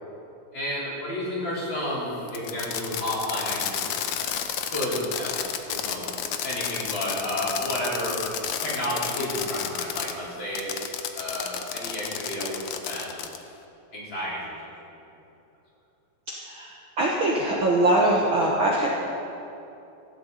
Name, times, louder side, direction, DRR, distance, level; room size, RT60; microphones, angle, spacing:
voice 1, 0.5-4.3 4.7-5.3 5.7-6.1 6.4-8.2 8.6-10.6 11.1-13.1 13.9-14.4, left 1 dB, 40° left, -8 dB, 4.8 m, -31 dB
Fireworks, 2.3-10.1 10.5-13.4, left 9 dB, 75° left, 1.3 m, -31 dB
voice 2, 17.0-18.9, right 1 dB, 55° right, -3 dB, 1.7 m, -22 dB
16.5 x 15.0 x 4.1 m, 2.7 s
omnidirectional pair, 3.4 m